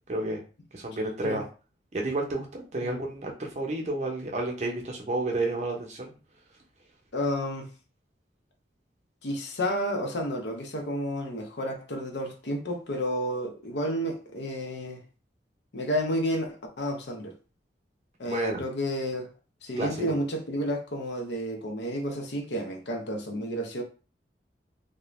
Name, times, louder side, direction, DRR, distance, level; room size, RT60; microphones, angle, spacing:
voice 1, 0.1-0.4 0.7-1.4 1.9-6.1 18.2-18.6 19.8-20.1, right 2 dB, 40° right, 0.7 m, -30 dB
voice 2, 7.1-7.7 9.2-15.0 15.7-17.4 18.2-19.3 19.6-23.8, equal, 70° left, 0.6 m, -31 dB
2.4 x 2.1 x 3.1 m
head